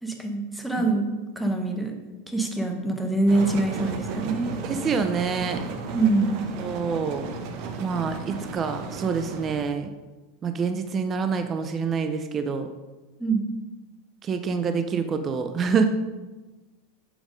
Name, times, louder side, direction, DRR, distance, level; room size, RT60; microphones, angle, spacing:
voice 1, 0.0-1.1 1.4-1.9 2.3-4.5 5.9-6.4 13.2-13.4, right 3 dB, ahead, 3 dB, 0.8 m, -24 dB
sound 1, 3.3-9.7, right 4 dB, 50° right, 0.7 m, -34 dB
voice 2, 4.6-5.6 6.6-7.3 7.8-9.9 10.4-12.7 14.2-15.8, right 5 dB, 25° right, 8 dB, 0.4 m, -26 dB
7.2 x 3.5 x 5.2 m, 1.2 s
supercardioid pair, 145°, 0 cm